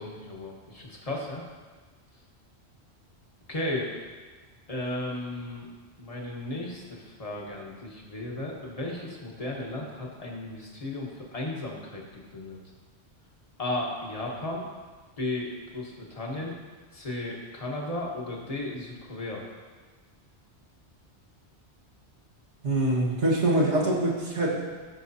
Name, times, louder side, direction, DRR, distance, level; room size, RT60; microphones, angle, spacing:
voice 1, 0.0-1.4 3.5-3.9 4.7-5.7 6.0-12.6 13.6-14.6 15.2-15.5 15.7-16.6 16.9-19.4, left 2 dB, 35° left, -2 dB, 1.4 m, -34 dB
voice 2, 22.6-24.6, right 1 dB, 90° right, -4 dB, 2.0 m, -24 dB
14.5 x 6.5 x 2.8 m, 1.4 s
omnidirectional pair, 1.1 m